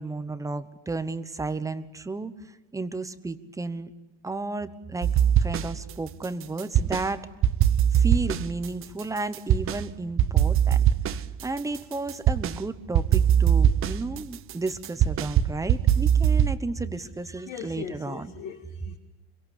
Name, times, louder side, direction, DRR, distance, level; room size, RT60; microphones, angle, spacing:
voice 1, 0.0-2.3 2.7-3.9 4.2-7.3 7.9-18.3, right 3 dB, 10° right, 12 dB, 1.1 m, -33 dB
sound 1, 5.0-5.9 6.2-7.1 7.4-9.8 10.2-12.6 12.9-16.6, right 9 dB, 35° right, 0.9 m, -22 dB
voice 2, 17.4-19.0, left 9 dB, 50° left, 1 dB, 2.8 m, -39 dB
25.5 x 23.0 x 8.5 m, 1.1 s
cardioid pair, 145°, 38 cm